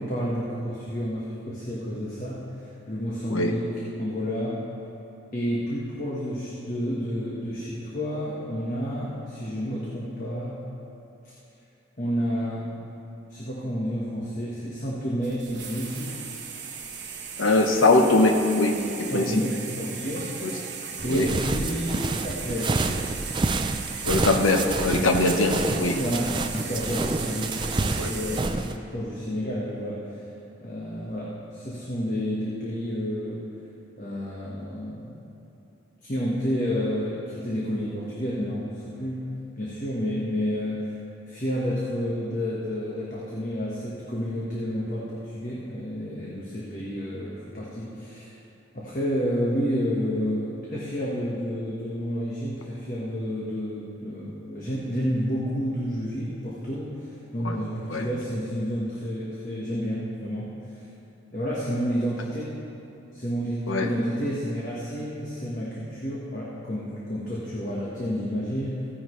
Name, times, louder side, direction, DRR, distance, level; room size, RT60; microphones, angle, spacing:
voice 1, 0.0-2.5 2.9-3.7 4.0-4.6 5.3-10.6 12.0-12.7 13.3-16.2 19.1-20.3 21.0-22.9 26.0-30.0 30.6-33.5 34.0-35.2 36.0-39.2 39.6-40.9 41.3-48.3 48.7-60.6 61.3-62.5 63.1-68.9, equal, 40° left, -6 dB, 1.3 m, -30 dB
sound 1, 15.2-28.4, right 6 dB, 55° right, 1.1 m, -37 dB
voice 2, 17.4-19.3 20.4-20.5 21.1-21.3 24.1-26.0 28.0-28.1 57.4-57.5 57.9-58.1 63.7-63.9, left 2 dB, 85° left, 3 dB, 1.0 m, -21 dB
sound 2, 21.0-28.7, right 3 dB, 25° right, 0.4 m, -28 dB
16.0 x 9.8 x 3.2 m, 2.8 s
head